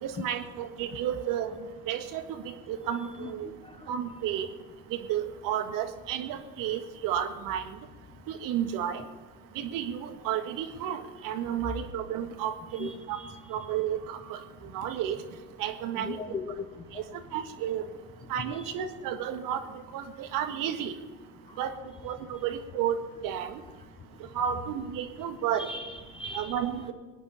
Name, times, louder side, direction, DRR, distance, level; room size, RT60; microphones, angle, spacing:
voice 1, 0.0-3.5 3.9-4.5 4.9-7.8 8.3-9.0 9.6-13.2 13.5-14.4 14.7-15.2 15.6-16.2 16.9-17.0 17.3-17.8 18.3-19.6 19.9-20.9 21.6-21.7 22.0-23.0 23.2-23.5 24.3-25.7 26.3-26.9, right 10 dB, 40° right, 8 dB, 1.7 m, -32 dB
voice 2, 12.8-13.3 16.0-16.6 18.6-18.7 25.6-26.6, left 3 dB, 10° left, 8 dB, 0.5 m, -38 dB
23.0 x 9.9 x 5.6 m, 1.3 s
hypercardioid pair, 90°, 48 cm